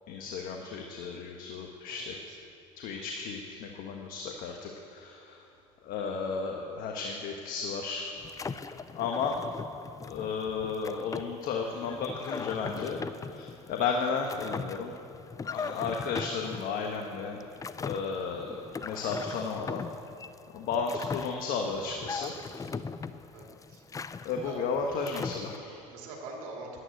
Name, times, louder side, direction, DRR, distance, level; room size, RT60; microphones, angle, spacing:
voice 1, 0.1-2.1 2.8-5.4 5.8-8.1 8.9-9.3 10.1-13.0 13.3-14.9 15.4-17.4 17.8-19.9 20.5-22.3 24.2-25.8, left 5 dB, 60° left, 2 dB, 1.3 m, -33 dB
voice 2, 1.9-2.4 23.3-23.8 24.4-24.6 25.7-26.8, right 3 dB, 75° right, 0 dB, 2.9 m, -44 dB
sound 1, 8.2-25.6, left 5 dB, 20° left, 0.5 m, -40 dB
11.5 x 9.7 x 7.8 m, 2.7 s
hypercardioid pair, 80°, 16 cm